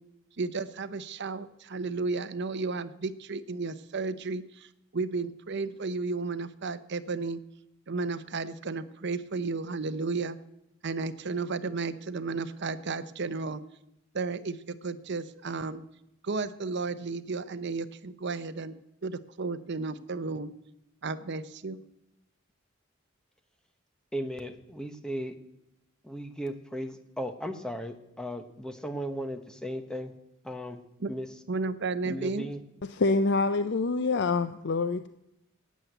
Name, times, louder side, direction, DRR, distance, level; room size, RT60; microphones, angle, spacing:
voice 1, 0.4-4.7 4.9-7.4 7.9-10.4 10.8-13.6 14.1-14.6 14.8-15.8 16.2-18.7 19.0-20.5 21.0-21.8 31.0-31.1 31.5-32.5, right 4 dB, 55° right, 13 dB, 0.8 m, -33 dB
voice 2, 24.1-25.3 26.0-30.1 30.4-30.8 31.1-31.3 32.0-32.6, equal, 5° left, 7 dB, 1.0 m, -36 dB
voice 3, 32.8-35.1, left 3 dB, 55° left, 11 dB, 0.5 m, -26 dB
12.5 x 9.4 x 8.0 m, 0.85 s
head